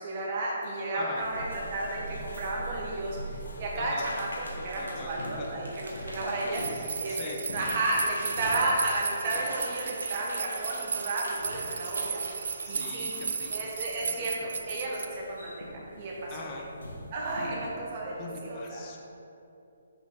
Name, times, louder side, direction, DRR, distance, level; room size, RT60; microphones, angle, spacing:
voice 1, 0.0-13.1 13.5-16.5 17.1-18.8, right 2 dB, 40° right, -3 dB, 1.1 m, -33 dB
sound 1, 1.1-18.3, equal, 80° left, 1.1 m, -43 dB
sound 2, 4.2-13.7, right 1 dB, 85° right, 1.3 m, -44 dB
voice 2, 4.5-5.6 7.1-7.4 12.6-14.5 16.3-16.7 18.2-19.0, left 3 dB, 30° left, 0 dB, 0.7 m, -43 dB
sound 3, 6.5-15.1, right 6 dB, 60° right, 0.3 m, -35 dB
5.7 x 4.8 x 3.7 m, 2.7 s
figure-of-eight pair, 140°, 0 cm